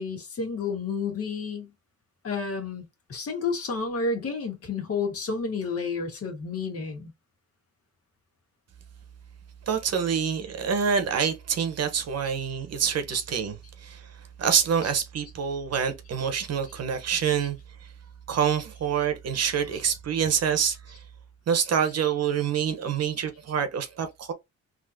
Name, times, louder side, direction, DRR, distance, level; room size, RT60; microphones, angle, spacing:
voice 1, 0.0-1.7 2.2-2.8 3.1-7.1, left 4 dB, 50° left, 1.7 m, -30 dB
voice 2, 9.7-14.1 14.4-17.6 18.3-21.0 21.5-24.3, right 7 dB, 55° right, 1.0 m, -26 dB
3.7 x 2.8 x 2.7 m
cardioid pair, 90°, 30 cm